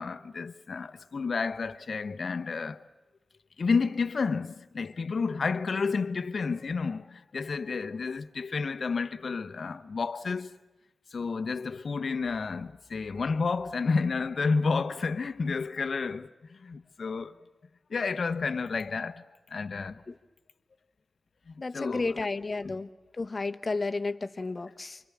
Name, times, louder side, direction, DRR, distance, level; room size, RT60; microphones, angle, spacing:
voice 1, 0.0-2.8 3.6-10.5 11.1-17.3 17.9-19.2 19.5-20.0 21.5-22.3 22.6-22.7, left 4 dB, 55° left, 1.0 m, -31 dB
voice 2, 21.6-22.9 23.2-25.0, left 3 dB, 35° left, 1.2 m, -32 dB
28.5 x 25.0 x 7.3 m
wide cardioid pair, 105°, 0 cm